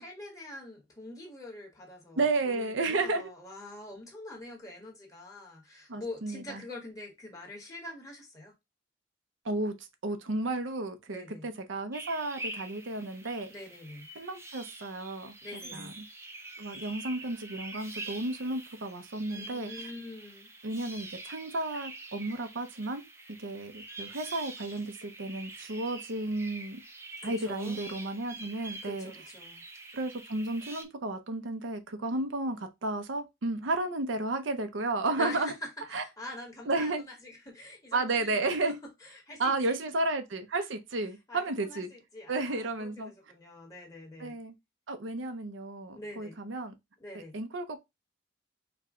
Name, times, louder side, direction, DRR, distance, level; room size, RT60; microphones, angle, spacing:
voice 1, 0.0-8.5 11.1-11.5 13.5-14.1 15.4-16.0 19.3-20.5 27.2-27.8 28.8-29.6 35.2-38.6 39.0-39.8 41.3-44.4 45.9-46.4 47.0-47.4, left 1 dB, 20° left, 1.4 m, -45 dB
voice 2, 2.2-3.2 5.9-6.6 9.4-13.5 14.2-15.3 15.7-15.9 16.6-19.7 20.6-23.0 23.4-26.8 27.2-29.1 29.9-35.5 35.9-36.0 36.7-37.0 37.9-38.8 39.4-41.9 42.3-43.1 44.2-44.5 44.9-46.7 47.1-47.8, right 2 dB, 80° right, 0.7 m, -32 dB
sound 1, 11.9-30.8, right 2 dB, 15° right, 0.5 m, -45 dB
4.7 x 2.2 x 3.6 m
head